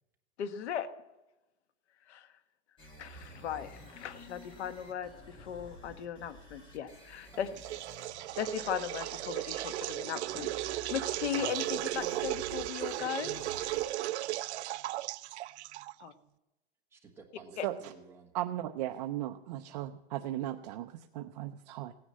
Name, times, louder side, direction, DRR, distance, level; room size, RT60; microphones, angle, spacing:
voice 1, 0.4-0.9 2.1-2.3 3.0-7.5 8.4-13.3 16.0-16.1 17.6-17.7, left 9 dB, 90° left, 11 dB, 1.3 m, -37 dB
sound 1, 2.8-13.8, left 1 dB, 15° left, 1.6 m, -51 dB
sound 2, 7.6-16.1, right 15 dB, 90° right, 0.5 m, -36 dB
voice 2, 16.9-18.3 19.7-19.9 20.6-20.7, right 5 dB, 5° right, 0 dB, 1.3 m, -55 dB
voice 3, 17.6-17.9 18.3-21.9, right 13 dB, 40° right, 6 dB, 0.6 m, -37 dB
17.0 x 9.9 x 7.5 m, 0.99 s
supercardioid pair, 175°, 33 cm